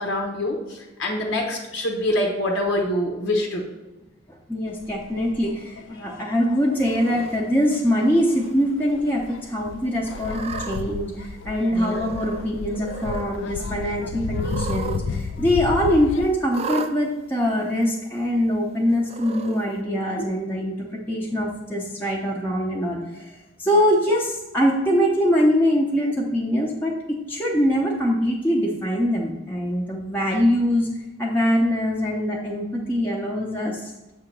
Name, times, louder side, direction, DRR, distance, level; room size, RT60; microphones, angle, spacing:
voice 1, 0.0-3.6 11.7-12.0 20.2-20.3, left 1 dB, 85° left, 0 dB, 1.0 m, -25 dB
voice 2, 4.3-23.3 23.6-30.9 31.2-33.9, equal, 10° left, -4 dB, 0.6 m, -23 dB
sound 1, 4.7-16.3, left 5 dB, 70° left, 0.3 m, -34 dB
Cat, 6.7-7.3 8.1-8.5 8.9-9.0 10.1-10.8 11.8-12.5 12.7-13.3 14.3-15.0 15.3-15.4 16.5-16.9 17.8-17.9 19.0-19.6, right 4 dB, 30° right, 0.3 m, -34 dB
7.3 x 2.9 x 6.0 m, 1.1 s
head